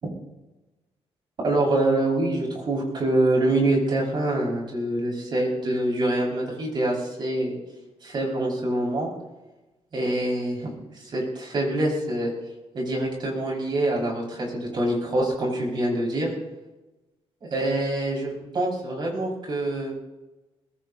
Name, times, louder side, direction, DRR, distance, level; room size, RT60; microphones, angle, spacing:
voice 1, 1.4-7.6 8.0-9.1 9.9-12.3 12.7-16.3 17.5-19.9, right 1 dB, 45° right, -3 dB, 5.8 m, -25 dB
23.0 x 21.5 x 2.9 m, 1.1 s
wide cardioid pair, 160°, 11 cm